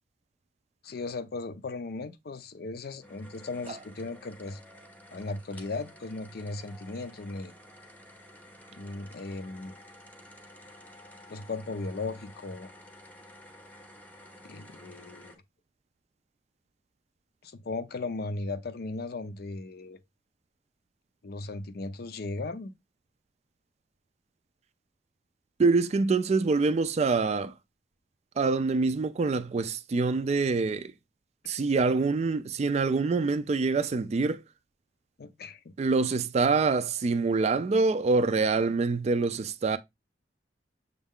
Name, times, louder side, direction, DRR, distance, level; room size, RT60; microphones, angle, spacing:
voice 1, 0.8-4.6 5.1-7.6 8.7-9.7 11.3-12.7 14.4-15.4 17.4-20.0 21.2-22.7 35.2-35.7, left 3 dB, 60° left, 0.5 m, -37 dB
sound 1, 3.0-15.4, left 1 dB, 10° left, 0.7 m, -52 dB
voice 2, 25.6-27.5 28.4-30.9 31.5-34.4 35.8-39.8, right 4 dB, 40° right, 0.3 m, -25 dB
6.3 x 2.3 x 3.6 m
head